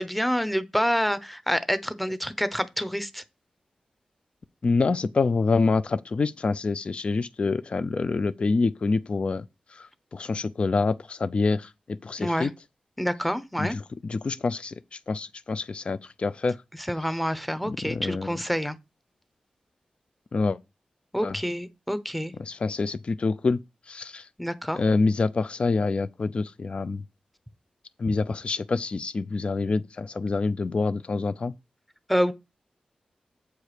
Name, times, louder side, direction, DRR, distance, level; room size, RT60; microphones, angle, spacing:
voice 1, 0.0-3.2 12.2-12.5 13.0-13.8 16.9-18.8 21.1-22.3 24.4-24.8 32.1-32.3, equal, ahead, 0.8 m, -27 dB
voice 2, 4.6-9.4 9.7-12.5 13.6-16.6 17.6-18.4 20.3-20.6 21.2-21.4 22.4-23.6 23.9-24.3 24.7-27.0 28.0-31.5, left 3 dB, 50° left, 0.4 m, -26 dB
8.2 x 4.6 x 5.0 m
wide cardioid pair, 95°, 2 cm